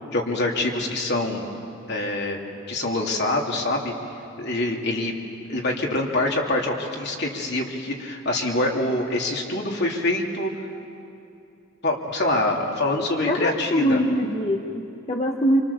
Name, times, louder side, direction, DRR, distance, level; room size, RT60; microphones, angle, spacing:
voice 1, 0.1-1.4 1.9-2.4 2.7-3.9 4.4-5.1 5.5-10.5 11.8-14.0, left 2 dB, 55° left, 0 dB, 2.9 m, -25 dB
voice 2, 13.3-15.6, equal, 30° left, 2 dB, 1.1 m, -23 dB
26.5 x 25.5 x 7.0 m, 2.7 s
head